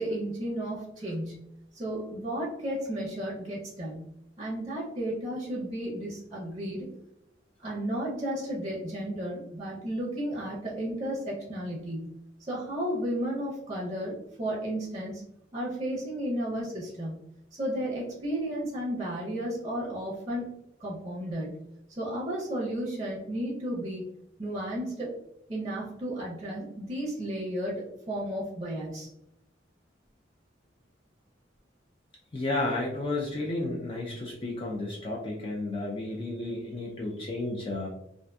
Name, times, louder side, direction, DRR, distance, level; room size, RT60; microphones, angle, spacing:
voice 1, 0.0-1.4 1.7-4.1 4.4-6.9 7.6-12.1 12.4-15.2 15.5-17.2 17.5-20.5 20.8-21.6 22.0-24.0 24.4-25.1 25.5-29.1, right 1 dB, 20° right, -5 dB, 0.6 m, -33 dB
voice 2, 32.3-37.9, left 2 dB, 30° left, -3 dB, 0.3 m, -32 dB
2.5 x 2.4 x 2.2 m, 0.81 s
head